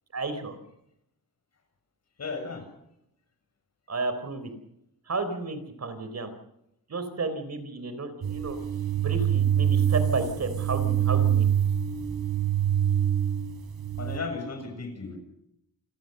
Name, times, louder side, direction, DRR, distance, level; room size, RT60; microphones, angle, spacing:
voice 1, 0.1-0.6 3.9-4.5 5.1-6.3 6.9-8.6 9.0-11.4, right 3 dB, 45° right, 10 dB, 4.0 m, -32 dB
voice 2, 2.2-2.6 14.0-15.2, left 4 dB, 45° left, 5 dB, 7.0 m, -35 dB
sound 1, 8.2-14.2, right 9 dB, 80° right, 4.3 m, -25 dB
28.5 x 19.0 x 6.7 m, 0.79 s
wide cardioid pair, 140°, 36 cm